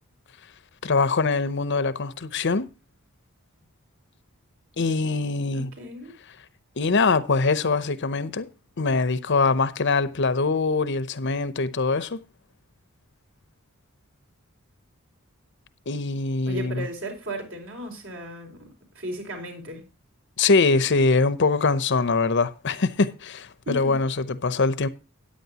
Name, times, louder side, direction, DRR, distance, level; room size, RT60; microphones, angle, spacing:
voice 1, 0.8-2.7 4.8-5.7 6.8-8.5 8.8-12.2 15.9-16.8 20.4-24.9, left 3 dB, 55° left, 0.8 m, -23 dB
voice 2, 5.5-6.1 16.4-18.7 18.9-19.8 23.6-24.0, equal, 60° right, 5.0 m, -35 dB
14.0 x 10.0 x 2.9 m
head